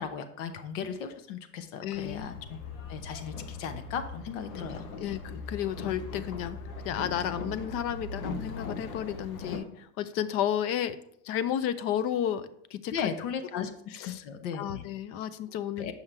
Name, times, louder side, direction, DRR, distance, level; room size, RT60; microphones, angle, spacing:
voice 1, 0.0-2.6 2.9-5.1 12.9-13.7 14.0-14.9 15.8-15.9, left 7 dB, 65° left, 9 dB, 1.0 m, -36 dB
voice 2, 1.8-2.3 5.0-6.6 6.8-11.0 11.2-13.1 13.5-14.2 14.5-15.9, left 10 dB, 35° left, 14 dB, 0.4 m, -32 dB
Boat Water vehicle, 1.9-9.6, left 4 dB, 90° left, 1.2 m, -39 dB
7.3 x 5.6 x 3.3 m, 0.71 s
supercardioid pair, 135°, 40 cm